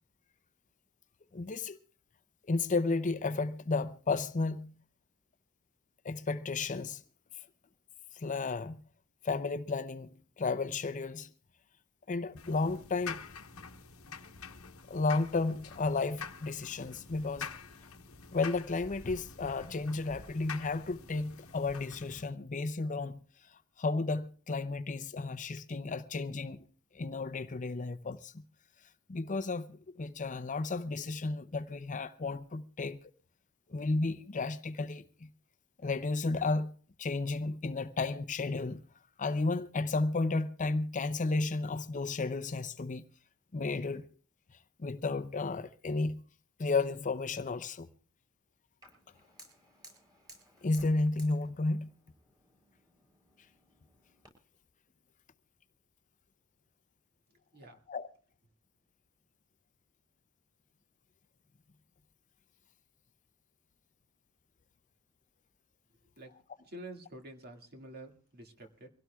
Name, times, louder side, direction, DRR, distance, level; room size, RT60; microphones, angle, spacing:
voice 1, 1.3-1.8 2.5-4.7 6.0-7.0 8.1-8.8 9.2-11.3 12.1-13.2 14.9-17.5 18.3-23.2 23.8-26.7 26.9-28.4 29.1-33.0 33.7-35.3 35.8-36.7 37.0-38.8 39.2-43.1 43.5-44.1 44.8-46.2 46.6-47.9 50.6-51.9 57.9-58.1, left 3 dB, 35° left, 0.6 m, -33 dB
sound 1, 12.4-22.2, left 5 dB, 75° left, 1.0 m, -47 dB
Fire, 48.8-54.3, right 1 dB, 20° right, 7.5 m, -58 dB
voice 2, 66.6-68.9, right 1 dB, 45° right, 2.1 m, -48 dB
24.5 x 17.0 x 2.3 m
head